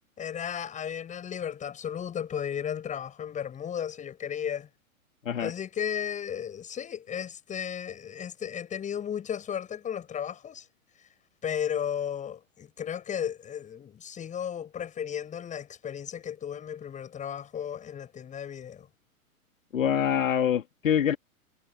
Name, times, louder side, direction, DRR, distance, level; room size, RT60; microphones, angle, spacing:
voice 1, 0.2-4.7 5.4-10.6 11.4-18.9, left 9 dB, 15° left, 7.6 m, -34 dB
voice 2, 19.7-21.2, left 9 dB, 60° left, 2.9 m, -25 dB
figure-of-eight pair, 115°, 43 cm